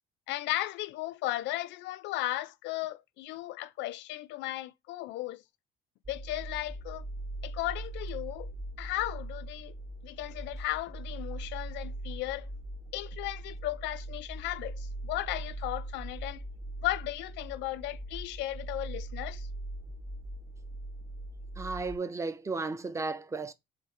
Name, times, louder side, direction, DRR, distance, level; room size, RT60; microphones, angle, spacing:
voice 1, 0.3-5.4 6.1-7.0 7.4-8.5 8.8-9.7 10.0-12.5 12.9-16.4 16.8-19.5, left 16 dB, 70° left, 0.4 m, -35 dB
sound 1, 6.0-22.0, right 1 dB, 35° right, 0.8 m, -41 dB
voice 2, 21.6-23.5, right 3 dB, 15° right, 0.4 m, -34 dB
4.4 x 2.3 x 3.7 m
cardioid pair, 120°, 19 cm